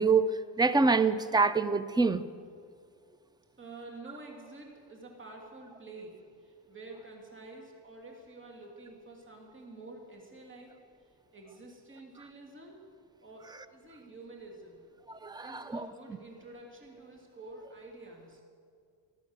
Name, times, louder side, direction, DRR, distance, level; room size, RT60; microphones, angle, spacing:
voice 1, 0.0-2.2 15.2-15.8, right 4 dB, 10° right, 0.4 m, -26 dB
voice 2, 3.6-10.7 11.3-12.9 13.2-14.8 15.4-18.4, right 2 dB, 25° right, 2.9 m, -49 dB
13.5 x 12.5 x 8.0 m
cardioid pair, 115°, 48 cm